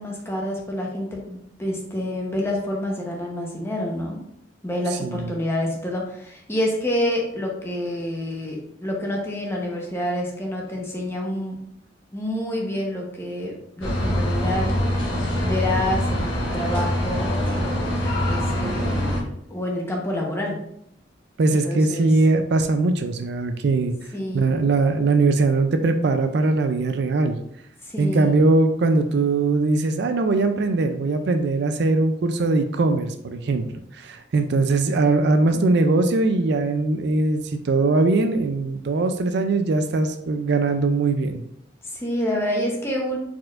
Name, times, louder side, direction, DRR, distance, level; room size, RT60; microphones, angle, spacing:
voice 1, 0.0-4.2 4.6-11.6 12.1-14.7 15.4-20.6 21.5-22.1 24.1-24.4 27.8-28.4 41.8-43.2, left 1 dB, 15° left, -1 dB, 0.9 m, -28 dB
voice 2, 4.9-5.3 21.4-23.9 24.3-27.4 28.0-33.6 33.9-41.4, right 3 dB, 60° right, 8 dB, 0.4 m, -21 dB
sound 1, 13.8-19.2, equal, 90° left, 1.2 m, -24 dB
4.4 x 4.3 x 2.5 m, 0.72 s
head